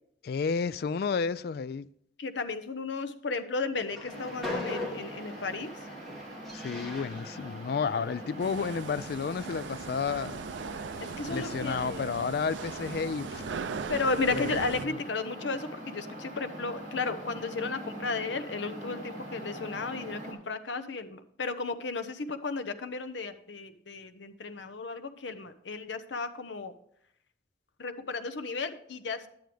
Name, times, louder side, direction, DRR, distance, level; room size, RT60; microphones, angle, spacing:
voice 1, 0.2-1.9 6.5-10.4 11.3-13.5 14.4-14.5, left 5 dB, 55° left, 0.3 m, -31 dB
voice 2, 2.2-5.7 11.0-12.1 13.9-26.7 27.8-29.3, left 3 dB, 80° left, 0.8 m, -34 dB
Train, 3.8-9.1, left 2 dB, ahead, 2.6 m, -41 dB
sound 1, 4.1-20.3, right 1 dB, 40° right, 2.8 m, -43 dB
sound 2, 8.4-14.9, right 5 dB, 85° right, 0.4 m, -39 dB
10.5 x 9.3 x 3.4 m
head